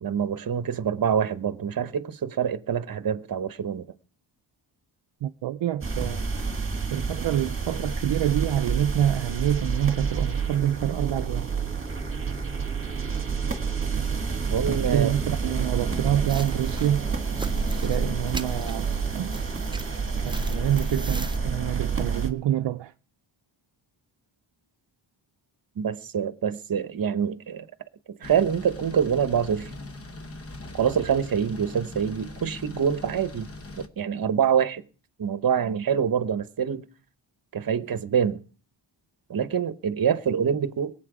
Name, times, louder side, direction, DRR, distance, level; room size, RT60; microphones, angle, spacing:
voice 1, 0.0-3.9 14.5-15.2 25.8-27.7 28.2-29.7 30.7-33.5 33.8-34.8 35.2-36.8 37.5-38.4 39.3-40.9, right 7 dB, 50° right, 1.0 m, -25 dB
voice 2, 5.2-6.3 6.9-11.5 14.7-17.1 17.8-19.4 20.2-22.9, right 11 dB, 65° right, 0.6 m, -27 dB
sound 1, 5.8-22.3, right 5 dB, 25° right, 2.1 m, -29 dB
sound 2, 16.2-21.4, right 3 dB, 10° right, 0.6 m, -40 dB
sound 3, 28.2-33.9, left 2 dB, 30° left, 1.1 m, -41 dB
22.5 x 7.8 x 4.9 m
wide cardioid pair, 125°, 46 cm